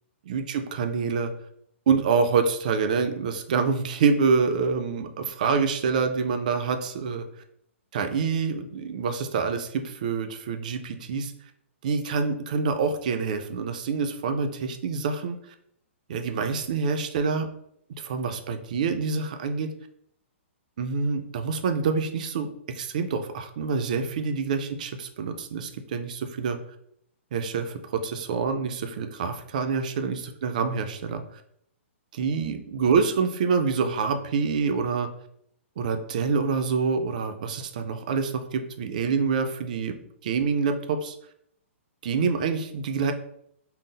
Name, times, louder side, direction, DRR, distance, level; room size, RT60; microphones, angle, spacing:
voice 1, 0.3-1.3 1.9-7.3 7.9-11.3 11.8-15.4 16.1-17.5 18.0-19.7 20.8-22.5 22.8-26.6 27.3-31.4 32.1-35.1 35.8-40.0 40.2-41.2 42.0-43.1, right 5 dB, 35° right, 7 dB, 0.4 m, -26 dB
3.8 x 2.0 x 3.8 m, 0.70 s
hypercardioid pair, 175°, 7 cm